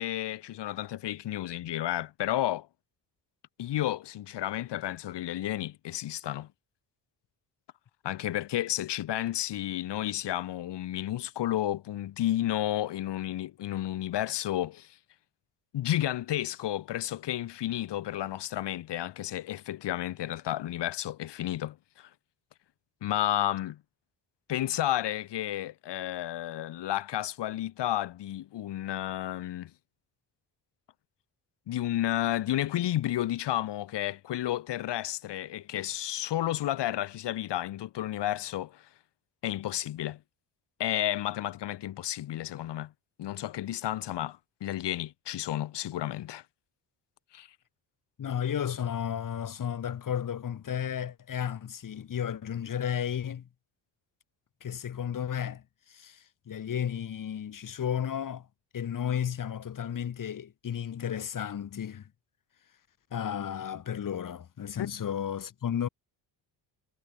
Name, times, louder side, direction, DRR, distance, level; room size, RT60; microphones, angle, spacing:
voice 1, 0.0-2.7 3.6-6.5 8.0-15.0 15.7-22.1 23.0-23.8 24.5-29.7 31.7-38.8 39.4-40.2 40.8-42.9 43.2-46.4 47.3-47.5, left 13 dB, 70° left, 1.7 m, -32 dB
voice 2, 48.2-53.5 54.6-58.5 58.7-62.1 63.1-65.9, left 9 dB, 45° left, 1.6 m, -33 dB
cardioid pair, 75°, 44 cm